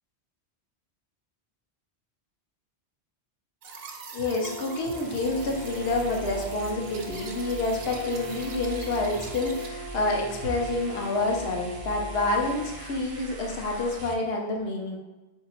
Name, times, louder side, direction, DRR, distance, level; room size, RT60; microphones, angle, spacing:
sound 1, 3.6-9.7, right 4 dB, 65° right, 0.8 m, -44 dB
voice 1, 4.1-15.0, left 2 dB, 65° left, 0 dB, 1.0 m, -28 dB
Brass instrument, 4.3-12.7, right 1 dB, 15° left, 0.5 m, -41 dB
sound 2, 4.7-14.1, right 2 dB, 45° right, 0.4 m, -41 dB
3.9 x 2.8 x 4.3 m, 1.1 s
omnidirectional pair, 1.1 m